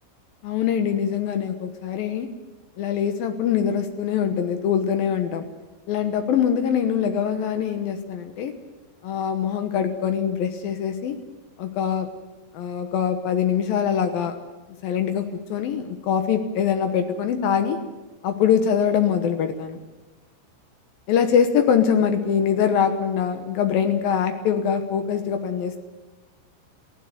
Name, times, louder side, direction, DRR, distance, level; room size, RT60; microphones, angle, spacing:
voice 1, 0.4-2.3 2.8-5.5 5.9-8.5 9.0-11.2 11.6-12.1 12.5-14.3 14.8-17.8 18.2-19.8 21.1-25.8, left 8 dB, 85° left, 7 dB, 2.0 m, -23 dB
21.5 x 16.0 x 9.5 m, 1.2 s
omnidirectional pair, 6.0 m